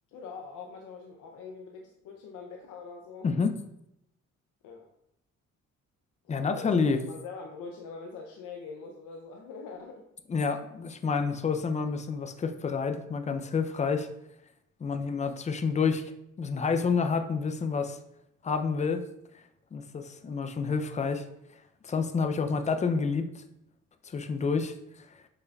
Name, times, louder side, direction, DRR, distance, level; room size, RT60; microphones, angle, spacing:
voice 1, 0.1-3.3 4.6-4.9 6.2-10.0, left 4 dB, 85° left, 1 dB, 0.6 m, -43 dB
voice 2, 3.2-3.5 6.3-7.0 10.3-14.1 14.8-16.1 16.4-18.0 18.4-19.0 19.7-21.2 21.8-23.4 24.0-24.7, left 5 dB, 25° left, 8 dB, 0.4 m, -28 dB
5.4 x 3.6 x 2.3 m, 0.80 s
cardioid pair, 90°, 30 cm